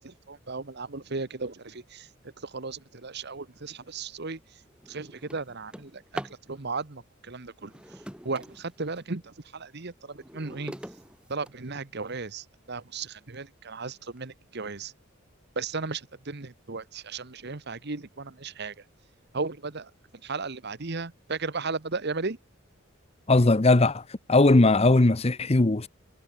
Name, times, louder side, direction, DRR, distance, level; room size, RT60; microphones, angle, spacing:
voice 1, 0.0-2.1 2.4-4.4 4.9-7.7 8.2-10.8 11.3-14.9 15.6-18.7 19.3-19.9 20.2-22.4, right 4 dB, 55° right, 1.3 m, -35 dB
Drawer open or close, 3.8-4.0 4.5-6.5 7.5-9.1 9.7-12.1 12.8-12.9 13.3-13.4 13.8-14.2, equal, 5° right, 4.2 m, -44 dB
voice 2, 23.3-24.0 24.3-25.9, left 2 dB, 30° left, 0.8 m, -19 dB
head